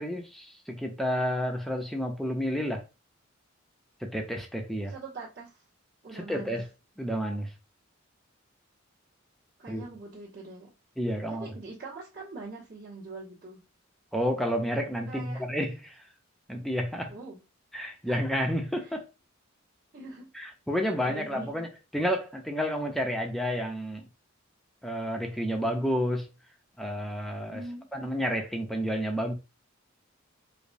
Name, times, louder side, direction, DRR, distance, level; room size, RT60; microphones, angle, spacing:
voice 1, 0.0-2.8 4.0-4.9 6.1-6.7 7.0-7.5 9.7-9.8 11.0-11.5 14.1-16.0 16.5-17.1 17.7-19.1 20.3-21.7 21.9-24.1 24.8-26.3 26.8-27.6 27.9-29.3, equal, ahead, 0.6 m, -30 dB
voice 2, 4.8-5.6 6.0-6.6 9.6-10.7 11.3-13.6 15.1-15.4 17.1-17.4 18.0-18.2 19.9-20.3 21.0-21.5 27.5-27.9, right 3 dB, 50° right, 1.5 m, -43 dB
4.9 x 2.1 x 2.6 m
head